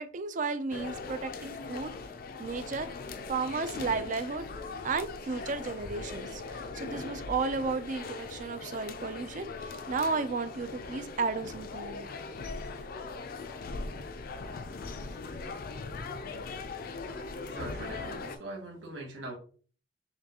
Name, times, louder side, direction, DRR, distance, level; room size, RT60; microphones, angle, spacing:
voice 1, 0.0-1.9 2.4-2.9 3.3-4.5 4.8-12.1, right 4 dB, 40° right, 11 dB, 0.4 m, -33 dB
sound 1, 0.7-18.4, left 4 dB, 45° left, 0.4 m, -40 dB
voice 2, 17.4-19.3, right 2 dB, 75° right, -1 dB, 1.2 m, -41 dB
5.8 x 2.3 x 2.8 m, 0.42 s
head